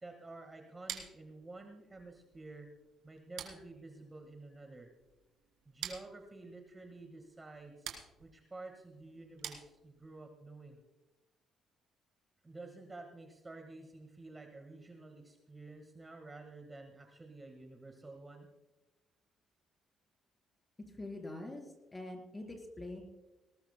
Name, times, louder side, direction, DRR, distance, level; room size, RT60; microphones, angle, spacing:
voice 1, 0.0-2.7 3.0-4.9 5.6-7.9 8.2-10.8 12.4-18.5, right 2 dB, 20° right, 3 dB, 1.6 m, -50 dB
sound 1, 0.9-10.2, right 9 dB, 80° right, 3.1 m, -49 dB
voice 2, 20.9-23.0, left 2 dB, 15° left, 3 dB, 3.8 m, -44 dB
20.5 x 19.0 x 2.2 m, 1.0 s
cardioid pair, 130°, 0 cm